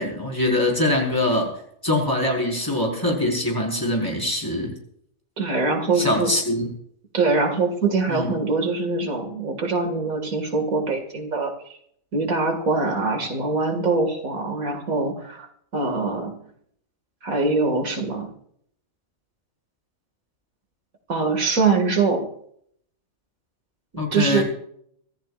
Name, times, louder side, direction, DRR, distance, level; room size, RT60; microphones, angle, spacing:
voice 1, 0.0-1.5 1.8-4.7 6.0-6.7 8.1-8.3 24.0-24.4, left 1 dB, 15° left, -1 dB, 5.1 m, -23 dB
voice 2, 5.4-6.3 7.1-11.5 12.1-15.5 15.7-16.4 17.2-18.3 21.1-22.3 23.9-24.4, right 3 dB, 85° right, 4 dB, 2.6 m, -23 dB
24.5 x 15.0 x 2.5 m, 0.66 s
omnidirectional pair, 1.4 m